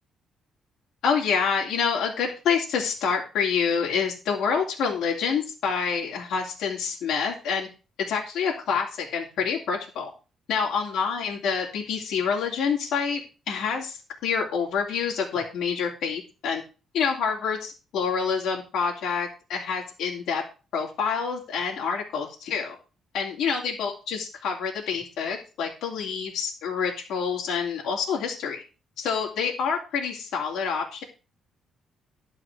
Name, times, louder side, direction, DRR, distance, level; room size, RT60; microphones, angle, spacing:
voice 1, 1.0-7.7 8.1-10.1 10.5-16.6 16.9-20.4 20.7-22.8 23.1-28.6 29.0-31.0, left 6 dB, 75° left, -2 dB, 2.9 m, -27 dB
12.0 x 4.9 x 6.2 m, 0.33 s
cardioid pair, 135°, 0 cm